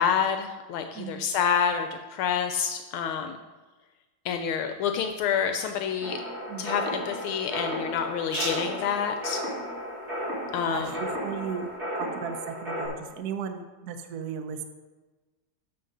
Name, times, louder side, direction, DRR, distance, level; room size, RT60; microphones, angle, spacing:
voice 1, 0.0-3.4 4.2-6.2 6.6-9.4 10.5-10.9, left 7 dB, 80° left, 6 dB, 1.4 m, -28 dB
sound 1, 4.3-11.8, left 1 dB, 40° left, 4.2 m, -43 dB
sound 2, 6.0-12.9, equal, 30° right, 3.4 m, -34 dB
voice 2, 10.6-11.7 11.9-14.6, right 7 dB, 60° right, 7 dB, 1.0 m, -35 dB
13.0 x 6.5 x 3.9 m, 1.2 s
omnidirectional pair, 2.4 m